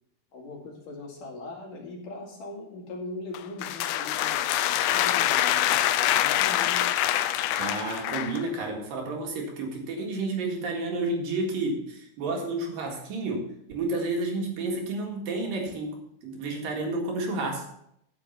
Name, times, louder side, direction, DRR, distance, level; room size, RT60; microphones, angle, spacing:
voice 1, 0.3-6.8, left 2 dB, 50° left, -1 dB, 3.3 m, -40 dB
sound 1, 3.3-8.5, left 12 dB, 85° left, 2.8 m, -25 dB
voice 2, 7.6-17.7, right 2 dB, 55° right, 1 dB, 3.1 m, -31 dB
11.0 x 7.2 x 5.7 m, 0.72 s
omnidirectional pair, 5.5 m